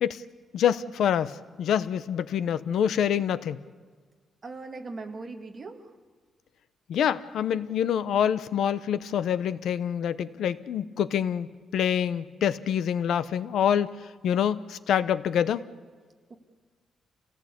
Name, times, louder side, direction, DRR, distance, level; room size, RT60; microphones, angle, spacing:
voice 1, 0.5-3.6 6.9-11.5 11.7-15.6, left 9 dB, 75° left, 15 dB, 0.9 m, -26 dB
voice 2, 4.4-5.9 16.3-16.4, right 3 dB, 30° right, 4 dB, 2.2 m, -39 dB
28.5 x 18.0 x 8.5 m, 1.5 s
cardioid pair, 150°, 0 cm